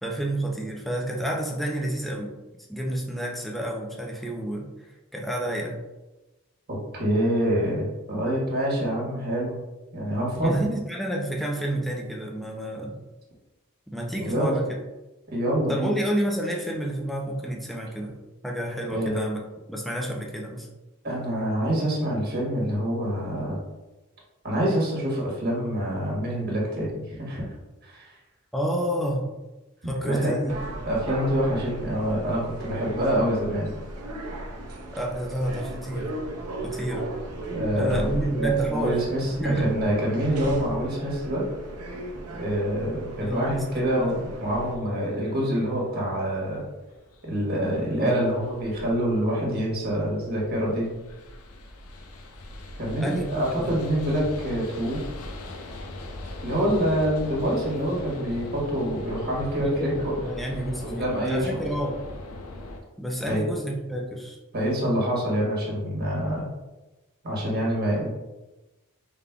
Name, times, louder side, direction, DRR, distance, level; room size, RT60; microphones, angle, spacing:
voice 1, 0.0-2.3 2.7-4.7 5.1-5.8 10.4-13.0 13.9-14.7 15.7-18.1 18.4-19.4 19.7-20.7 28.5-29.3 29.8-30.6 34.9-36.2 36.6-37.1 37.8-39.0 39.4-39.7 43.2-44.2 48.0-48.3 53.0-53.7 59.6-62.0 63.0-64.4, right 1 dB, ahead, -1 dB, 0.5 m, -29 dB
voice 2, 6.7-9.6 9.9-10.6 14.2-14.5 15.3-15.9 18.9-19.2 21.0-23.6 24.4-27.4 27.8-28.2 30.0-30.3 30.8-33.7 37.5-41.4 42.4-46.6 47.2-50.9 52.8-55.1 56.4-60.1 60.8-61.6 63.3-63.4 64.5-66.5 67.2-68.1, equal, 45° right, -4 dB, 1.4 m, -26 dB
sound 1, 30.5-44.8, right 2 dB, 85° right, 0.7 m, -35 dB
sound 2, 43.2-62.8, left 1 dB, 75° left, 0.6 m, -41 dB
5.2 x 3.6 x 2.3 m, 1.1 s
head